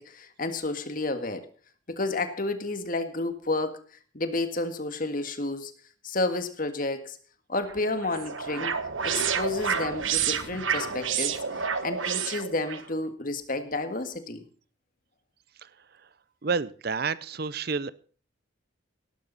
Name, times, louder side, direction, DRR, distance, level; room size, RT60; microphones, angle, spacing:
voice 1, 0.0-1.5 1.9-3.8 4.1-5.7 6.0-7.2 7.5-8.7 9.0-11.4 11.8-14.4, left 2 dB, 40° left, 8 dB, 1.8 m, -31 dB
sound 1, 7.7-12.9, right 7 dB, 75° right, 1.3 m, -29 dB
voice 2, 16.4-17.9, right 5 dB, 50° right, 17 dB, 0.6 m, -29 dB
18.0 x 12.0 x 4.1 m, 0.41 s
head